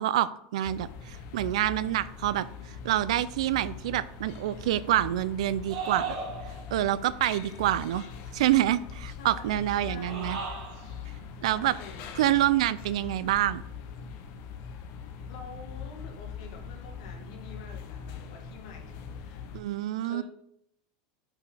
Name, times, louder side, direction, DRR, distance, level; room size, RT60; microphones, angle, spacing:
voice 1, 0.0-2.5 2.8-6.2 6.7-8.1 8.3-10.4 11.4-11.7 12.2-13.6 19.5-20.2, right 13 dB, 85° right, 16 dB, 0.4 m, -27 dB
sound 1, 0.6-19.6, left 6 dB, 50° left, 0.8 m, -42 dB
sound 2, 5.7-6.8 9.9-10.9, right 5 dB, 70° right, 1.6 m, -35 dB
voice 2, 9.1-10.4 11.5-12.1 15.3-19.5 20.0-20.2, left 5 dB, 70° left, 2 dB, 1.8 m, -47 dB
5.7 x 4.9 x 4.9 m, 0.72 s
supercardioid pair, 165°, 3 cm